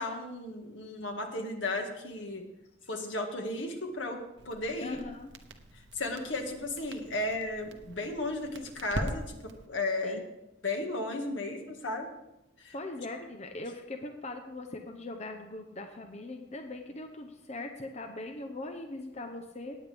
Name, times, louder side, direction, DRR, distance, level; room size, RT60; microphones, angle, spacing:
voice 1, 0.0-2.4 2.9-5.0 5.9-9.4 9.7-10.2 10.6-12.1 12.6-12.7, left 2 dB, 80° left, 3 dB, 1.9 m, -34 dB
Crackle, 4.4-9.7, right 1 dB, 70° right, 1.0 m, -42 dB
voice 2, 4.8-5.3 10.0-10.2 12.7-19.8, left 2 dB, 35° left, 5 dB, 0.8 m, -40 dB
19.0 x 8.6 x 3.5 m, 0.92 s
head